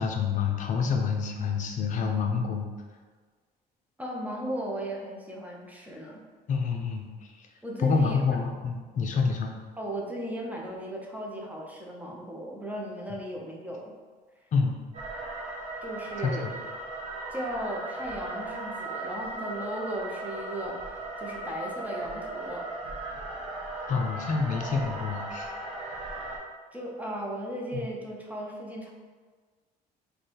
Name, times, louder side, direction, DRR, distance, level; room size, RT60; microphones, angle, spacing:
voice 1, 0.0-2.7 6.5-7.3 7.8-9.5 14.5-14.8 16.2-16.5 23.9-25.5 27.7-27.8, left 5 dB, 50° left, 3 dB, 0.6 m, -27 dB
voice 2, 4.0-6.2 7.6-8.2 9.8-13.9 15.8-16.5 17.3-20.9 21.2-22.6 26.7-28.9, right 1 dB, 10° right, -2 dB, 0.7 m, -36 dB
sound 1, 14.9-26.4, right 2 dB, 40° right, 0.8 m, -37 dB
3.3 x 2.3 x 4.2 m, 1.5 s
cardioid pair, 110°, 17 cm